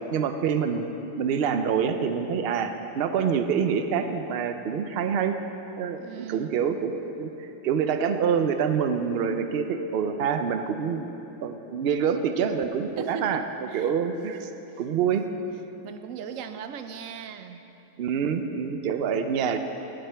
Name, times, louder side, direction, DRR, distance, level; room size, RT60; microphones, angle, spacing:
voice 1, 0.1-0.9 1.2-5.4 5.8-11.1 11.4-13.4 13.7-14.5 14.8-15.2 18.0-19.6, right 7 dB, 60° right, 7 dB, 0.8 m, -26 dB
voice 2, 6.0-6.8 12.9-13.9 14.7-14.8 15.8-17.6 18.0-18.1, right 7 dB, 90° right, 9 dB, 1.0 m, -38 dB
17.5 x 7.8 x 3.4 m, 2.9 s
omnidirectional pair, 1.3 m